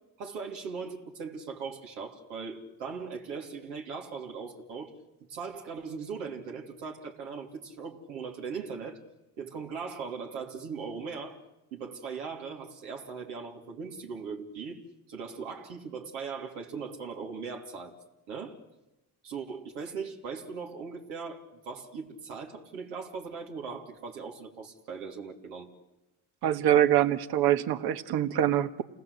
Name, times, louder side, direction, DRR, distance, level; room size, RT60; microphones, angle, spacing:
voice 1, 0.2-4.9 5.3-9.0 9.4-11.4 11.7-14.8 15.1-17.9 18.3-18.6 19.2-25.7, right 5 dB, 90° right, 3.0 m, -39 dB
voice 2, 26.4-28.8, right 11 dB, 65° right, 1.5 m, -24 dB
28.5 x 19.0 x 8.1 m
supercardioid pair, 70°, 40 cm